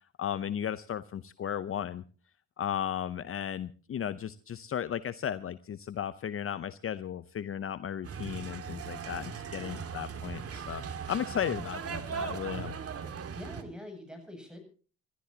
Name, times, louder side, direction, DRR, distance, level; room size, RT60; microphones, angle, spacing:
voice 1, 0.2-2.0 2.6-10.8 11.1-12.7, left 9 dB, 45° left, 14 dB, 0.7 m, -35 dB
sound 1, 8.0-13.6, right 6 dB, 50° right, 2.0 m, -39 dB
voice 2, 9.5-9.8 13.3-14.6, left 1 dB, 5° right, 5 dB, 7.8 m, -45 dB
27.5 x 13.5 x 2.8 m, 0.38 s
cardioid pair, 90°, 30 cm